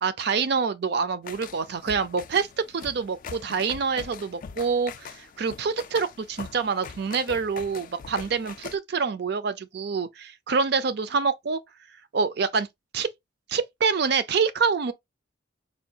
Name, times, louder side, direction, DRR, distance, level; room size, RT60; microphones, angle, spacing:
voice 1, 0.0-2.5 2.7-11.6 12.1-12.7 12.9-13.1 13.5-14.9, right 5 dB, 55° right, 0.4 m, -26 dB
sound 1, 1.2-8.8, left 6 dB, 45° left, 0.3 m, -42 dB
4.3 x 2.3 x 2.7 m
head